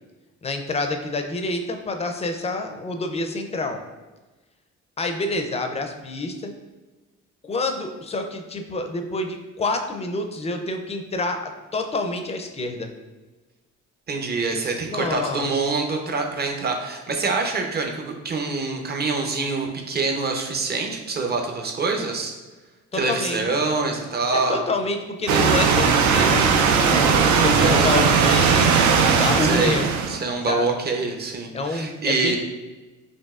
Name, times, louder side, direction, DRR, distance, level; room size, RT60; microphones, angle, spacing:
voice 1, 0.4-3.8 5.0-6.5 7.4-12.9 14.9-15.7 22.9-23.5 24.3-28.8 29.1-29.9 30.5-30.8 31.5-32.4, left 2 dB, 20° left, 5 dB, 0.5 m, -27 dB
voice 2, 14.1-22.3 22.9-24.6 27.5-27.9 29.4-29.8 30.1-32.4, right 3 dB, 35° right, 2 dB, 0.7 m, -25 dB
sound 1, 25.3-30.2, right 5 dB, 70° right, 0.5 m, -18 dB
5.3 x 2.7 x 2.4 m, 1.2 s
cardioid pair, 90°, 30 cm